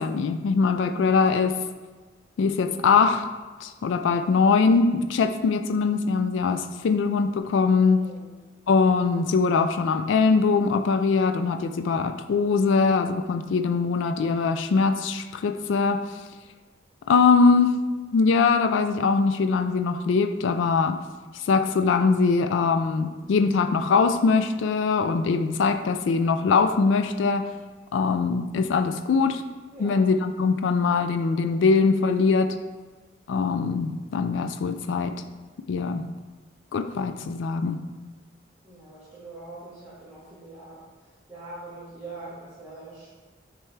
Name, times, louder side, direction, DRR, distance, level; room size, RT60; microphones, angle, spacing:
voice 1, 0.0-1.6 2.4-3.3 3.6-8.1 8.7-16.2 17.1-17.8 18.1-21.0 21.3-27.5 27.9-29.4 29.8-32.5 33.3-35.2 35.7-36.0 36.7-37.9, left 4 dB, 75° left, 9 dB, 0.3 m, -22 dB
voice 2, 8.0-8.3 29.7-30.0 38.6-40.9 41.3-43.1, right 2 dB, 10° right, -13 dB, 1.2 m, -42 dB
9.1 x 3.3 x 3.3 m, 1.3 s
head